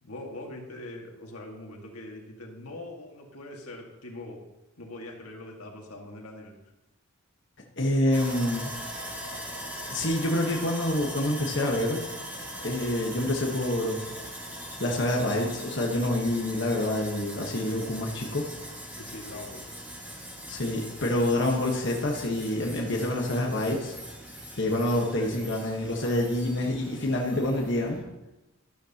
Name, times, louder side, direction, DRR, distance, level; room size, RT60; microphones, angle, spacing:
voice 1, 0.0-4.5 4.8-6.5 19.0-19.7 25.2-25.4, left 1 dB, 85° left, 1 dB, 1.8 m, -42 dB
voice 2, 7.8-8.7 9.9-12.0 12.6-14.0 14.8-18.5 20.5-24.0 24.6-28.0, left 1 dB, 55° left, -1 dB, 1.3 m, -27 dB
Sawing, 8.1-28.0, equal, 10° right, 1.8 m, -41 dB
12.0 x 12.0 x 2.9 m, 1.0 s
head